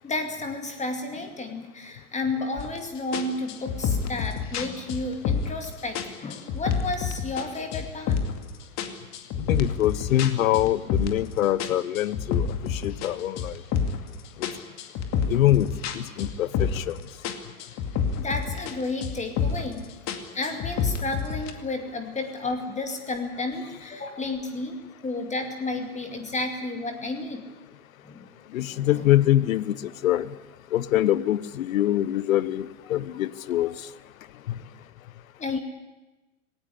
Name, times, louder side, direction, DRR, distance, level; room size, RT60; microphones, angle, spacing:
voice 1, 0.0-8.2 18.2-19.9 20.3-24.8 25.0-27.4 28.1-28.2 28.7-29.0 33.6-33.7 35.4-35.6, left 2 dB, 15° left, 5 dB, 2.3 m, -32 dB
sound 1, 2.6-2.8 3.1-5.6 5.9-7.5 7.7-8.4 8.8-11.3 11.6-14.1 14.4-17.0 17.2-18.7 19.0-19.7 20.1-21.5, left 6 dB, 40° left, 2.3 m, -28 dB
voice 2, 9.5-12.5 12.7-13.5 15.3-15.7 15.9-17.0 28.5-29.7 30.0-30.3 30.7-33.7 34.5-34.6, left 13 dB, 70° left, 18 dB, 1.1 m, -24 dB
18.0 x 18.0 x 10.0 m, 1.1 s
hypercardioid pair, 100°, 43 cm